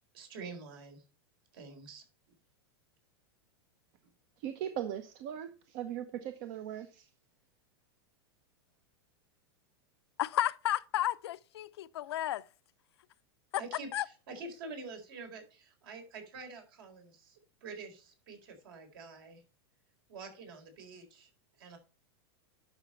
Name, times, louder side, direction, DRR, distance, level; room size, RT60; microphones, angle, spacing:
voice 1, 0.1-1.0 1.5-2.0 13.6-19.4 20.1-21.3 21.6-21.8, right 4 dB, 60° right, 4.0 m, -47 dB
voice 2, 4.4-7.1, right 10 dB, 45° right, 0.8 m, -39 dB
voice 3, 10.2-12.5 13.5-13.6 13.9-14.1, left 13 dB, 85° left, 0.6 m, -32 dB
11.0 x 6.1 x 4.3 m
supercardioid pair, 165°, 13 cm